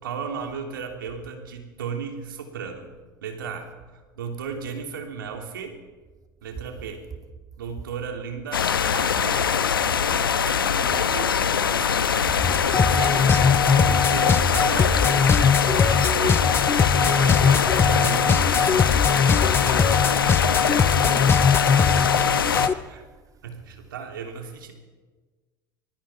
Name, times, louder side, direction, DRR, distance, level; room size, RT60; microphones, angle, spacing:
voice 1, 0.0-2.9 3.2-5.8 6.4-7.0 7.6-9.5 10.4-12.4 12.9-13.2 13.7-15.4 15.8-16.5 16.8-19.1 22.6-23.0 23.4-24.7, right 6 dB, 80° right, 3.2 m, -35 dB
sound 1, 8.5-22.7, left 7 dB, 85° left, 1.0 m, -23 dB
sound 2, 12.4-22.7, left 6 dB, 20° left, 0.5 m, -21 dB
voice 2, 20.6-21.7, right 6 dB, 30° right, 2.7 m, -42 dB
25.0 x 20.5 x 5.1 m
hypercardioid pair, 75°, 11 cm